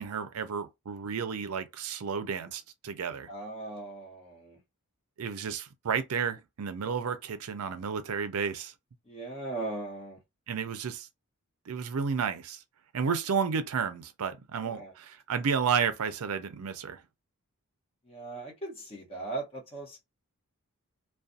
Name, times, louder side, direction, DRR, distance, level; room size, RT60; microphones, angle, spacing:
voice 1, 0.0-3.3 5.2-8.7 10.5-11.1 11.7-12.6 12.9-17.0, right 6 dB, 70° right, 0.5 m, -32 dB
voice 2, 3.3-4.6 9.1-10.2 14.6-14.9 18.1-20.0, right 2 dB, 25° left, 1.0 m, -38 dB
2.4 x 2.2 x 2.6 m
head